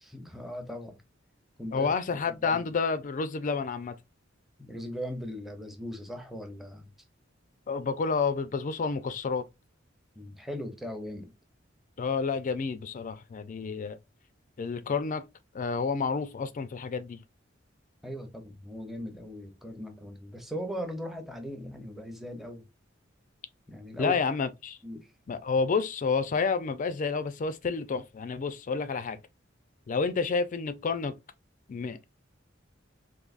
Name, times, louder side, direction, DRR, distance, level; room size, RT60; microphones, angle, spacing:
voice 1, 0.0-1.0 1.6-2.7 4.6-6.9 10.1-11.3 18.0-22.7 23.7-24.2 24.8-25.1, equal, ahead, 0.7 m, -39 dB
voice 2, 1.7-4.0 7.7-9.5 12.0-14.0 14.6-15.2 15.5-17.2 24.0-24.8 25.3-29.2 29.9-31.1 31.7-32.0, left 5 dB, 40° left, 0.4 m, -29 dB
3.9 x 2.6 x 2.4 m
head